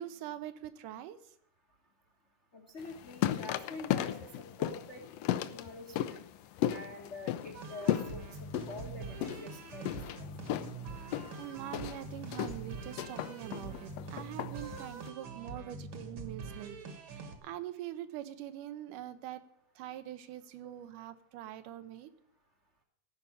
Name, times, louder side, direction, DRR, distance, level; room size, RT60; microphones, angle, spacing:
voice 1, 0.0-1.3 11.4-19.4 19.8-22.1, right 12 dB, 85° right, 11 dB, 2.4 m, -44 dB
voice 2, 2.5-5.0 5.5-6.2 6.7-8.2 8.7-10.3 13.6-13.7, left 2 dB, 55° left, 3 dB, 0.7 m, -46 dB
steps on wooden stairs, 2.8-15.1, left 12 dB, 85° left, 1.4 m, -36 dB
sound 1, 7.5-17.4, right 4 dB, 50° right, 1.6 m, -44 dB
15.0 x 5.5 x 8.7 m, 0.73 s
omnidirectional pair, 3.6 m